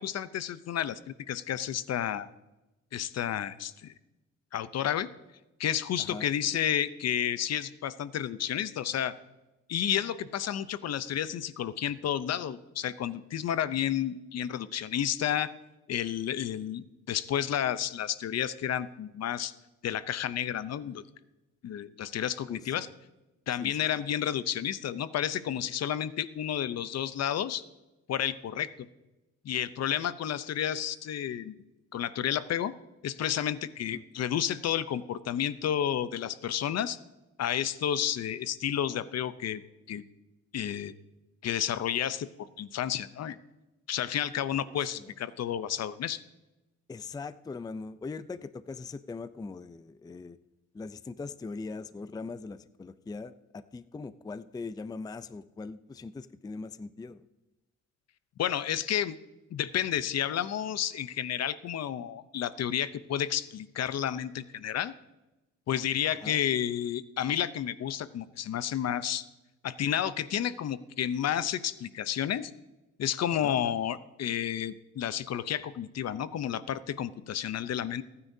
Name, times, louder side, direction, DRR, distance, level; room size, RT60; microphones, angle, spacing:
voice 1, 0.0-2.3 2.9-3.9 4.5-5.1 5.6-9.1 9.7-15.5 15.9-19.5 19.8-21.0 21.6-22.9 23.5-27.6 28.1-28.7 29.4-31.5 31.9-32.7 33.0-37.0 37.4-39.6 39.9-40.0 40.5-40.9 41.4-42.3 42.6-43.4 43.9-46.2 58.4-59.1 59.5-64.9 65.7-69.2 69.6-72.5 73.0-78.0, left 10 dB, 55° left, 15 dB, 0.7 m, -31 dB
voice 2, 44.7-45.1 46.9-50.4 50.7-57.2 66.2-66.4 73.4-73.8, left 4 dB, 15° left, 14 dB, 0.4 m, -41 dB
23.0 x 9.7 x 2.7 m, 1.0 s
cardioid pair, 90°, 30 cm